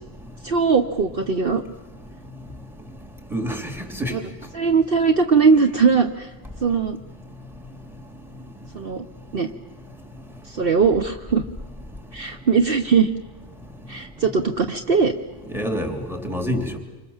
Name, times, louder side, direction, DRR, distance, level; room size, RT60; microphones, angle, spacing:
voice 1, 0.4-1.6 4.1-4.2 4.5-6.3 6.6-7.0 8.7-9.0 9.3-9.5 10.4-11.4 12.1-13.1 13.9-15.1, right 5 dB, 55° right, 1.2 m, -20 dB
voice 2, 3.3-4.1 15.5-16.8, equal, ahead, 3.1 m, -27 dB
28.0 x 26.0 x 7.3 m
omnidirectional pair, 1.2 m